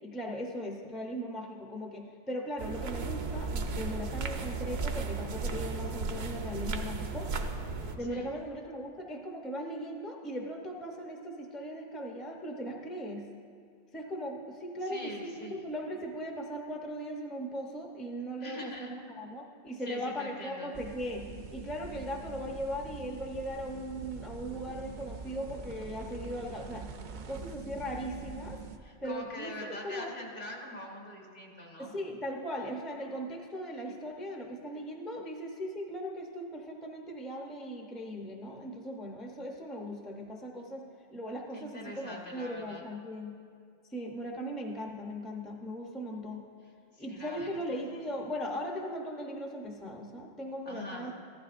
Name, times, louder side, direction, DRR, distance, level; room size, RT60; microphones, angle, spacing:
voice 1, 0.0-7.3 7.9-13.3 13.9-26.8 27.3-28.6 29.0-30.1 31.8-40.8 41.1-43.4 43.9-46.4 47.0-51.1, equal, ahead, 1 dB, 0.6 m, -38 dB
sound 1, 2.6-8.0, right 4 dB, 80° right, 1.0 m, -35 dB
voice 2, 14.9-15.6 18.4-18.9 19.8-20.7 28.8-31.9 41.5-42.8 47.0-47.8 50.7-51.1, left 1 dB, 55° left, -2 dB, 1.9 m, -43 dB
sound 2, 20.7-28.8, right 5 dB, 55° right, 0.6 m, -44 dB
14.5 x 12.0 x 2.5 m, 2.3 s
omnidirectional pair, 1.1 m